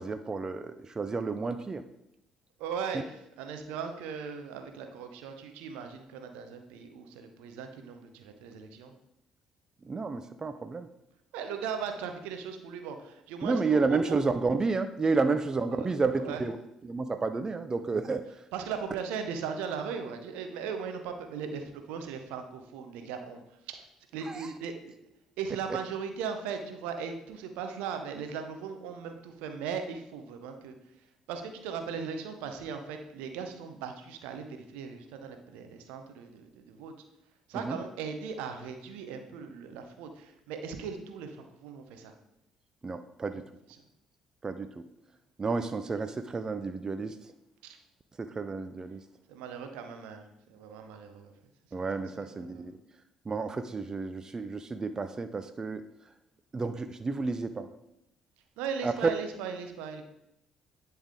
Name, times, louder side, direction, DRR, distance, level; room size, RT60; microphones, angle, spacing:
voice 1, 0.0-1.8 2.9-3.0 9.8-10.9 13.4-16.6 16.8-18.4 24.2-24.5 37.5-37.8 42.8-43.4 44.4-44.7 45.4-47.3 48.2-49.0 51.7-52.8 53.3-55.8 56.5-57.7 58.8-59.1, right 4 dB, 30° right, 10 dB, 0.4 m, -31 dB
voice 2, 2.6-3.1 3.4-8.9 11.3-14.2 15.7-15.9 16.2-16.4 18.5-23.8 24.1-24.7 25.4-30.7 31.3-36.9 37.5-42.1 47.6-47.8 49.3-50.2 50.5-51.3 52.1-52.7 58.6-60.0, right 6 dB, 70° right, 6 dB, 0.7 m, -38 dB
10.0 x 3.5 x 3.6 m, 0.85 s
figure-of-eight pair, 50°, 2 cm